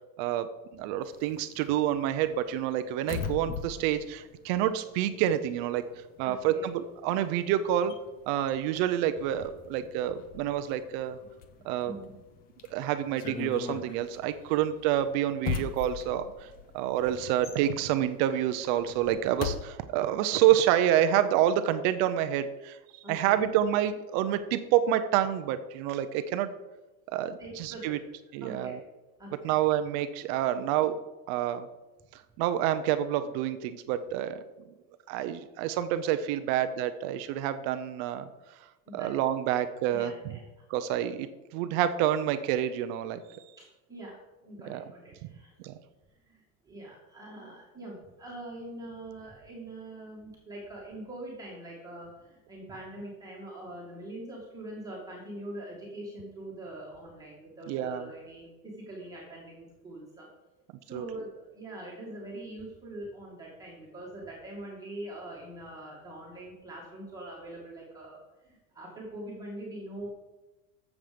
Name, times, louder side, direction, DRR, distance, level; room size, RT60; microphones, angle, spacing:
voice 1, 0.7-5.8 6.2-7.9 8.3-11.2 11.6-12.0 12.7-16.5 16.7-22.8 23.1-26.5 27.1-28.0 28.3-28.8 29.4-31.0 31.3-31.7 32.1-34.4 35.1-38.3 38.9-40.4 40.7-41.3 41.5-43.4 44.7-44.8 45.6-45.7 57.7-58.1 60.9-61.1, right 11 dB, 35° right, 10 dB, 0.5 m, -28 dB
sound 1, 1.0-5.5 5.7-19.6, left 6 dB, 20° left, 0.5 m, -41 dB
voice 2, 6.2-6.7 11.8-12.1 23.0-23.5 27.4-28.0 28.4-28.8 29.2-29.6 38.9-39.1 39.9-40.7 43.6-45.6 46.1-60.3 60.9-70.1, right 1 dB, 10° right, -5 dB, 2.0 m, -43 dB
13.5 x 7.3 x 5.1 m, 1.1 s
cardioid pair, 175°, 43 cm